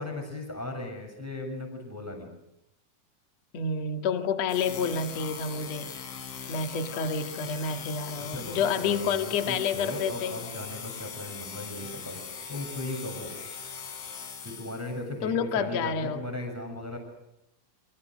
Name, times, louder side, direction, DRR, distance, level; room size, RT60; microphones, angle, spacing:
voice 1, 0.0-2.3 8.2-13.4 14.4-17.0, left 2 dB, 5° right, 3 dB, 6.5 m, -37 dB
voice 2, 3.5-5.9 6.5-10.4 15.2-16.2, left 5 dB, 50° left, 6 dB, 2.2 m, -29 dB
sound 1, 4.5-15.0, left 6 dB, 65° left, 6.1 m, -40 dB
28.5 x 26.5 x 6.5 m, 0.86 s
omnidirectional pair, 5.9 m